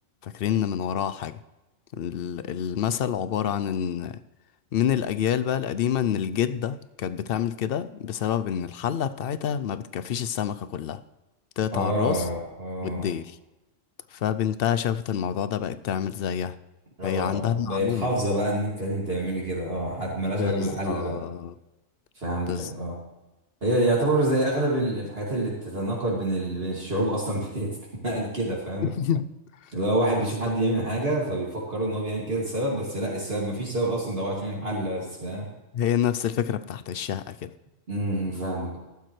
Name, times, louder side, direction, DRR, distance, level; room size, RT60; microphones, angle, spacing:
voice 1, 0.2-1.3 1.9-4.2 4.7-11.0 11.6-12.3 12.8-13.4 14.1-16.6 17.0-18.1 20.4-21.5 22.5-22.7 28.8-29.3 29.6-29.7 35.7-37.5, left 9 dB, 65° left, 13 dB, 0.6 m, -27 dB
voice 2, 11.7-13.0 17.0-21.2 22.2-22.9 23.6-27.7 28.0-28.9 29.7-35.4 37.9-38.8, right 1 dB, 50° right, -5 dB, 2.6 m, -27 dB
14.5 x 12.0 x 3.2 m, 1.0 s
omnidirectional pair, 1.4 m